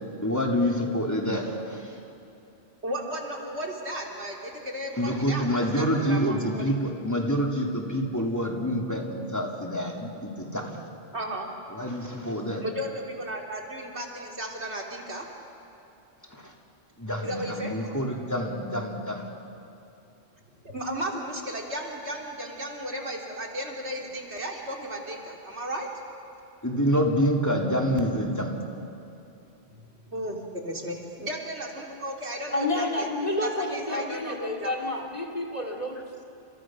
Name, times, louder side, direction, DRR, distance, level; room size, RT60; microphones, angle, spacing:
voice 1, 0.2-2.0 5.0-10.8 11.7-12.6 16.3-16.5 17.0-19.2 26.6-28.7, equal, 15° left, 0 dB, 2.8 m, -27 dB
voice 2, 2.8-6.8 11.1-11.5 12.6-15.3 17.2-17.7 20.6-25.9 29.7-29.8 30.1-33.1 33.4-34.8, right 1 dB, 85° right, 0 dB, 3.5 m, -34 dB
voice 3, 32.5-36.0, left 2 dB, 35° left, 2 dB, 2.9 m, -29 dB
29.5 x 28.0 x 6.3 m, 2.9 s
omnidirectional pair, 1.1 m